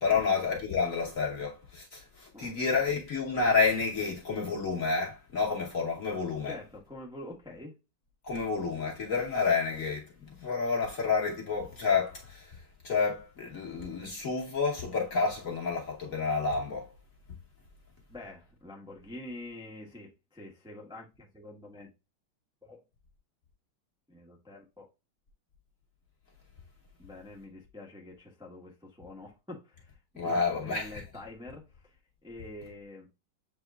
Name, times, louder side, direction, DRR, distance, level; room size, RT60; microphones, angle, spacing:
voice 1, 0.0-6.5 8.2-10.1 10.4-16.9 30.2-31.0, left 4 dB, 50° left, 1.2 m, -29 dB
voice 2, 2.3-3.0 6.4-7.7 18.1-21.9 22.6-22.8 24.1-24.9 27.0-33.1, left 2 dB, 5° right, 0.6 m, -46 dB
7.9 x 2.9 x 2.3 m
omnidirectional pair, 2.3 m